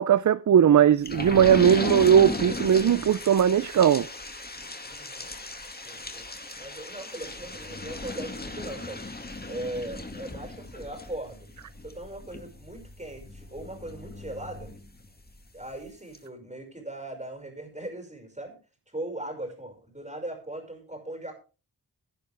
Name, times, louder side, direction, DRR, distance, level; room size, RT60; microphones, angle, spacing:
voice 1, 0.0-4.1, right 9 dB, 45° right, 0.5 m, -19 dB
sound 1, 1.0-15.4 15.8-15.9 16.1-16.2, left 2 dB, 25° left, 2.2 m, -36 dB
voice 2, 4.8-5.3 5.8-6.3 6.6-9.2 9.5-11.5 11.8-14.7 15.5-18.6 18.9-21.3, right 1 dB, 15° right, 5.7 m, -39 dB
16.5 x 10.5 x 3.4 m
wide cardioid pair, 85°, 41 cm